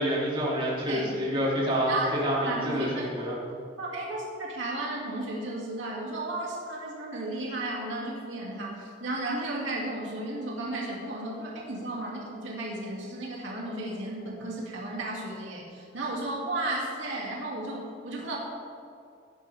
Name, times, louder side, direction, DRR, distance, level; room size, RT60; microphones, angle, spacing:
voice 1, 0.0-3.3, equal, 30° right, -6 dB, 3.2 m, -28 dB
voice 2, 1.9-3.1 3.8-18.4, right 2 dB, 80° right, -4 dB, 2.7 m, -34 dB
17.5 x 10.5 x 3.6 m, 2.4 s
head